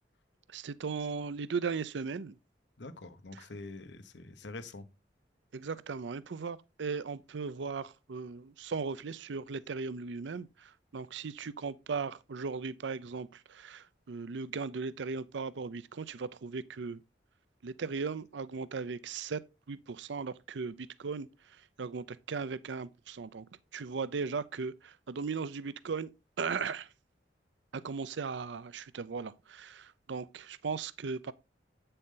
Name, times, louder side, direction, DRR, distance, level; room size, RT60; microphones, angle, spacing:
voice 1, 0.5-2.4 5.5-17.0 17.6-19.4 19.7-23.5 23.7-26.1 26.4-26.9 27.7-31.3, right 5 dB, 85° right, 0.5 m, -37 dB
voice 2, 2.8-4.9, left 2 dB, 80° left, 1.0 m, -45 dB
8.6 x 6.7 x 3.8 m
head